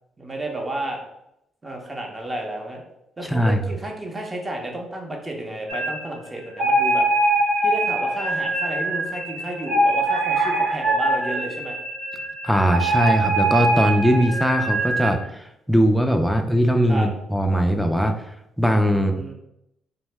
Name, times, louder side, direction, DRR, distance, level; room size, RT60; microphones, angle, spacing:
voice 1, 0.2-1.0 1.6-2.8 3.2-7.0 7.6-11.8 16.9-17.1 18.9-19.3, right 1 dB, 25° right, 1 dB, 0.7 m, -31 dB
voice 2, 3.2-3.6 12.4-18.2 18.6-19.3, equal, ahead, 5 dB, 0.3 m, -20 dB
sound 1, 5.7-6.0 6.5-15.1, right 1 dB, 65° right, 0.6 m, -23 dB
2.8 x 2.1 x 3.2 m, 0.82 s
cardioid pair, 90°, 0 cm